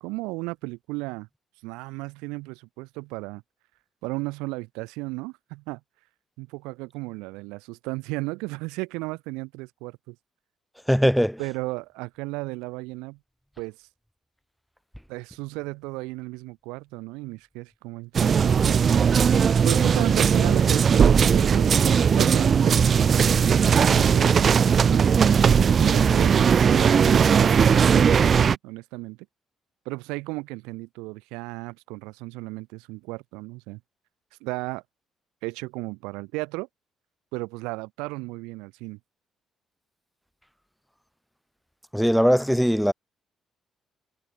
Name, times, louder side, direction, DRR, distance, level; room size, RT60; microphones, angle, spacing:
voice 1, 0.0-1.3 1.6-3.4 4.0-5.8 6.4-10.2 11.4-13.2 13.6-13.9 15.1-18.8 19.6-23.3 23.9-25.1 25.8-29.2 29.9-33.8 34.4-34.8 35.4-36.7 37.3-39.0, right 25 dB, 90° right, 2.1 m, -34 dB
voice 2, 10.9-11.4 41.9-42.9, equal, ahead, 1.7 m, -20 dB
sound 1, 18.1-28.6, right 7 dB, 50° right, 1.3 m, -18 dB
supercardioid pair, 60°, 0 cm